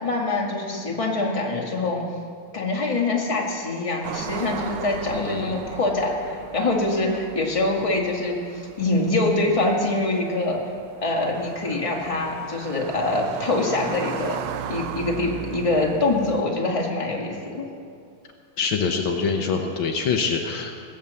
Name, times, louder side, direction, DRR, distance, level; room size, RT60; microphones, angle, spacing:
voice 1, 0.0-2.0 2.5-10.6 11.0-14.4 14.7-17.7, left 2 dB, 15° left, -1 dB, 1.9 m, -24 dB
sound 1, 4.0-16.4, right 9 dB, 70° right, 1.1 m, -37 dB
voice 2, 5.1-5.5 18.6-20.8, left 5 dB, 70° left, 3 dB, 1.7 m, -25 dB
18.5 x 8.9 x 7.0 m, 2.3 s
omnidirectional pair, 2.4 m